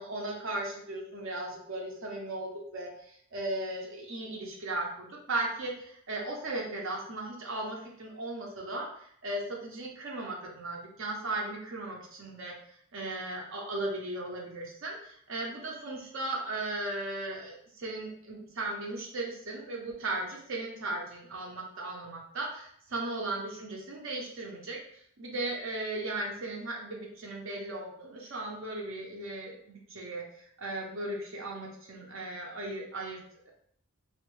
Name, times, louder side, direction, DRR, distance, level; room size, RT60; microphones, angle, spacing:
voice 1, 0.0-12.5 12.9-33.5, right 2 dB, 60° right, -1 dB, 0.7 m, -37 dB
3.1 x 2.2 x 3.0 m, 0.65 s
head